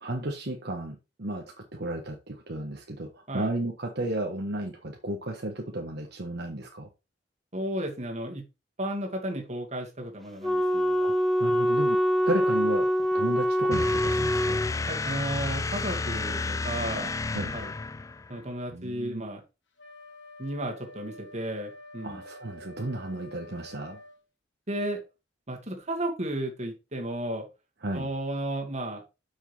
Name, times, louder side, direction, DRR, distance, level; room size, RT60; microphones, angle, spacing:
voice 1, 0.0-1.4 1.7-6.9 11.0-11.1 11.4-12.0 12.3-12.9 13.1-14.6 17.3-17.5 18.7-19.3 22.0-24.0 27.8-28.1, right 1 dB, 65° right, 1.2 m, -33 dB
voice 2, 7.5-8.4 8.8-11.0 14.9-17.2 17.5-17.7 18.3-19.4 20.4-22.2 24.7-25.0 25.5-27.4 27.9-29.0, right 1 dB, 40° right, 2.2 m, -33 dB
Wind instrument woodwind instrument, 10.4-14.7, equal, ahead, 0.9 m, -25 dB
sound 1, 13.7-18.4, left 3 dB, 20° left, 0.3 m, -31 dB
Wind instrument woodwind instrument 2, 19.8-24.2, left 2 dB, 75° left, 1.6 m, -48 dB
7.6 x 6.4 x 3.4 m
head